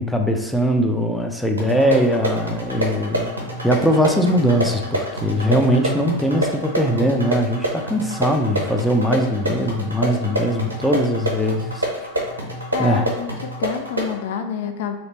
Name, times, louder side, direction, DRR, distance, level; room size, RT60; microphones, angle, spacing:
voice 1, 0.0-3.3 3.6-12.1 12.8-13.1, equal, ahead, 3 dB, 0.5 m, -20 dB
sound 1, 1.6-14.2, right 1 dB, 80° right, 1.0 m, -27 dB
voice 2, 12.7-15.0, left 7 dB, 55° left, 6 dB, 0.4 m, -27 dB
3.1 x 2.8 x 4.1 m, 1.1 s
figure-of-eight pair, 90°, 0 cm